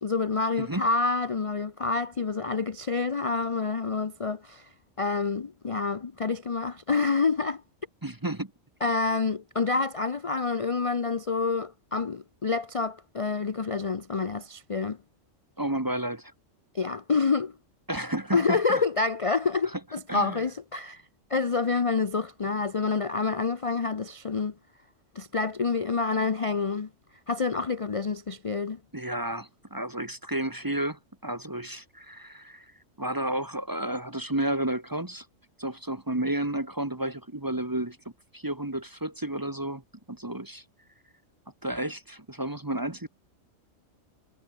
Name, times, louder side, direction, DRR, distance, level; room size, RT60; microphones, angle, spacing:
voice 1, 0.0-4.7 5.0-7.6 8.8-15.0 16.7-17.5 18.3-21.0 21.3-24.5 25.1-26.9 27.3-28.8, left 4 dB, 35° left, 0.7 m, -27 dB
voice 2, 0.6-0.9 8.0-8.5 15.6-16.3 17.9-18.8 19.7-19.8 20.1-20.4 28.9-32.7 33.0-35.3 35.6-38.0 38.3-39.8 40.1-40.6 41.6-43.1, right 1 dB, 15° right, 1.1 m, -31 dB
omnidirectional pair, 1.3 m